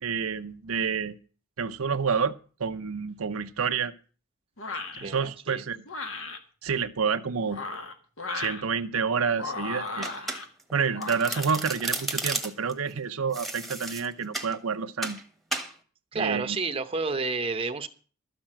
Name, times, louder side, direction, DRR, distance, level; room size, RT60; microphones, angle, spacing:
voice 1, 0.0-1.2 1.6-2.3 2.6-3.9 4.9-5.8 6.6-7.6 8.3-10.1 10.7-15.2 16.1-16.6, right 6 dB, 85° right, 0.7 m, -28 dB
sound 1, 4.6-5.0 5.8-6.4 7.4-8.6 9.3-10.4 10.9-11.5, left 3 dB, 65° left, 1.6 m, -35 dB
voice 2, 5.0-5.6 16.1-17.9, right 4 dB, 25° right, 0.9 m, -30 dB
Domestic sounds home sounds, 10.0-10.7 11.0-12.7 13.3-14.5 15.0-15.2 15.5-15.7, right 2 dB, ahead, 1.3 m, -33 dB
13.0 x 6.1 x 8.8 m
head